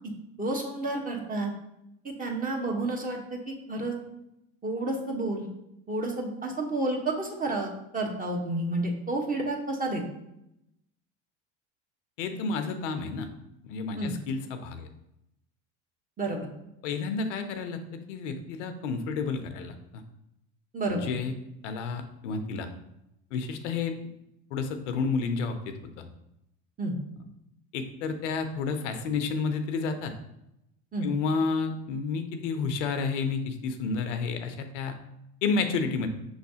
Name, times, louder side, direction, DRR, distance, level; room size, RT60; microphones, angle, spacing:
voice 1, 0.4-1.5 2.0-4.0 4.6-5.4 5.9-10.0 13.9-14.1 16.2-16.5 20.7-21.1 26.8-26.9 30.9-31.1, right 2 dB, 25° right, 0 dB, 1.1 m, -30 dB
voice 2, 12.2-13.3 13.6-14.9 16.8-17.8 18.1-20.0 20.9-21.3 21.6-22.7 23.3-23.9 24.5-26.0 27.7-30.1 31.0-34.9 35.4-36.1, left 4 dB, 85° left, 7 dB, 0.6 m, -30 dB
5.8 x 3.1 x 2.7 m, 0.84 s
hypercardioid pair, 85°, 36 cm